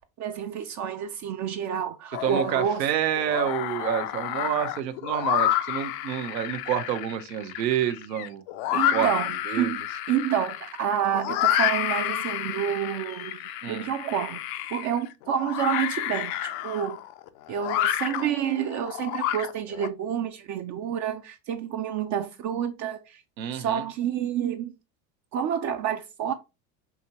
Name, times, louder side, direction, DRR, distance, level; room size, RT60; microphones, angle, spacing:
voice 1, 0.2-2.8 8.7-9.8 10.1-17.0 17.5-23.2 23.5-24.7 25.3-26.3, right 9 dB, 35° right, 0.5 m, -29 dB
sound 1, 2.1-2.8 3.2-19.9, left 12 dB, 60° left, 0.6 m, -30 dB
voice 2, 2.2-8.4 8.7-9.1 9.5-9.8 13.6-13.9 23.4-23.9, right 10 dB, 80° right, 0.8 m, -28 dB
6.0 x 2.9 x 2.8 m
hypercardioid pair, 80°, 50 cm